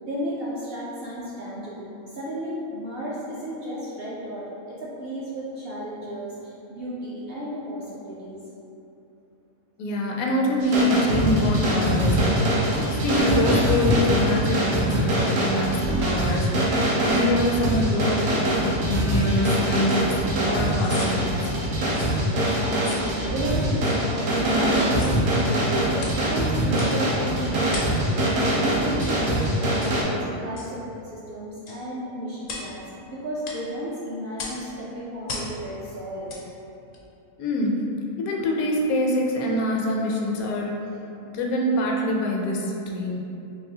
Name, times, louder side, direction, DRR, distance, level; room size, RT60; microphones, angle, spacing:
voice 1, 0.0-8.4 11.0-11.4 22.3-23.7 24.0-28.0 28.6-32.8 33.2-36.4, equal, 65° right, -7 dB, 0.6 m, -33 dB
voice 2, 9.8-12.3 12.8-16.5 17.0-21.6 37.4-37.8 38.2-40.7 41.3-43.2, left 1 dB, 85° left, -1 dB, 1.0 m, -25 dB
sound 1, 10.6-30.0, right 1 dB, 85° right, 1.1 m, -23 dB
sound 2, 19.9-20.0 20.7-21.1 21.9-22.2 22.8-23.1 23.8-24.0 24.8-25.2 26.0-26.2 26.7-27.0 27.7-28.0 28.4-28.6 29.0-29.2 29.8-30.0 30.6-30.7 31.7-31.8 32.4-32.7 33.4-33.6 34.4-34.6 35.3-35.5 36.3-36.4 36.9-37.0, left 3 dB, 60° left, 0.5 m, -37 dB
3.9 x 2.9 x 2.7 m, 2.8 s
omnidirectional pair, 1.5 m